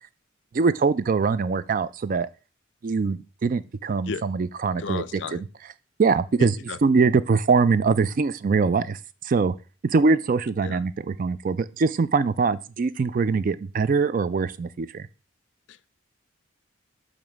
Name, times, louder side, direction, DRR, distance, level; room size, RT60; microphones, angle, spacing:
voice 1, 0.5-2.3 2.8-5.0 5.3-5.4 6.0-6.5 6.8-9.0 9.2-9.5 9.8-15.1, right 4 dB, 40° right, 0.3 m, -23 dB
voice 2, 4.8-5.4 6.4-6.8 10.6-10.8 15.7-15.9, left 5 dB, 65° left, 0.4 m, -34 dB
6.8 x 3.1 x 6.0 m
head